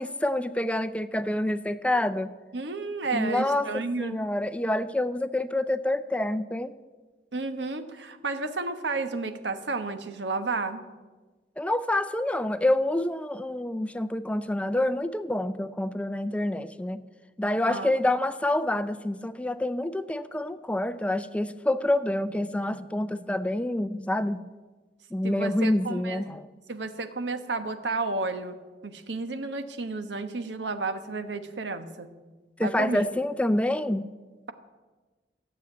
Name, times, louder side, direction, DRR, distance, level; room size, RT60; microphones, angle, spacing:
voice 1, 0.0-2.3 3.1-6.7 11.6-17.0 17.4-24.5 25.1-26.5 32.6-34.1, left 1 dB, 5° left, 12 dB, 0.4 m, -27 dB
voice 2, 2.5-4.2 7.3-10.8 17.6-17.9 25.2-26.2 26.7-28.6 28.8-32.1 32.6-33.0, right 3 dB, 85° right, 9 dB, 1.1 m, -32 dB
14.5 x 7.2 x 9.6 m, 1.3 s
head